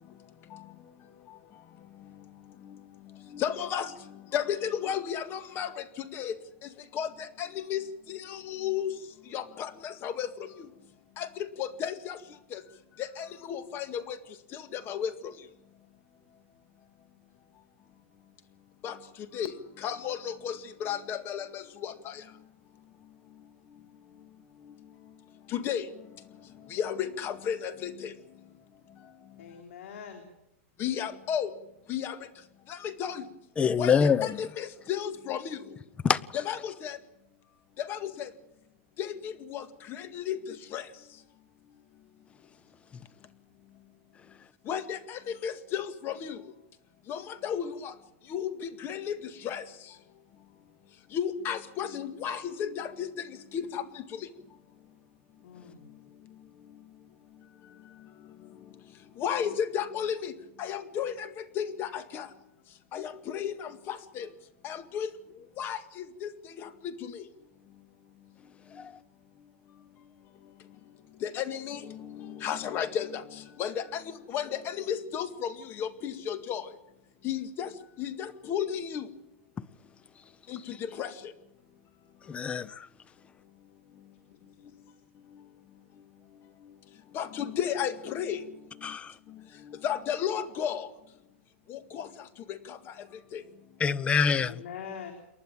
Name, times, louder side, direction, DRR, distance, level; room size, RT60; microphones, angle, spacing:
voice 1, 3.3-3.9 4.3-5.7 6.1-6.3 6.9-7.1 7.4-8.9 9.3-10.3 11.2-11.3 11.6-12.2 12.5-12.6 13.0-14.2 14.5-15.1 18.8-19.0 19.3-19.5 19.8-22.1 25.5-25.8 26.7-28.1 30.8-31.5 31.9-32.2 32.7-33.2 33.8-35.6 36.3-37.0 37.8-38.3 39.0-39.6 40.0-40.4 40.7-40.8 44.7-46.4 47.1-47.9 48.3-49.2 49.4-49.6 51.1-53.1 53.5-53.8 59.2-60.3 60.6-61.3 61.6-62.3 62.9-64.3 64.6-65.1 65.6-66.3 66.6-66.7 67.0-67.2 71.2-73.2 73.6-74.0 74.3-76.6 77.2-77.7 78.0-79.0 80.5-80.6 81.0-81.1 87.1-88.4 89.7-90.9 91.7-92.1 92.5-92.8 93.3-93.4, left 9 dB, 30° left, 2.0 m, -33 dB
voice 2, 29.4-30.3 55.4-55.9 84.3-84.4 84.8-84.9 94.3-95.1, left 7 dB, 80° left, 3.7 m, -43 dB
voice 3, 33.6-34.5 36.0-36.2 68.8-68.9 82.3-82.9 88.8-89.1 93.8-94.5, left 6 dB, 15° left, 0.7 m, -25 dB
28.5 x 11.5 x 8.9 m
supercardioid pair, 145°, 7 cm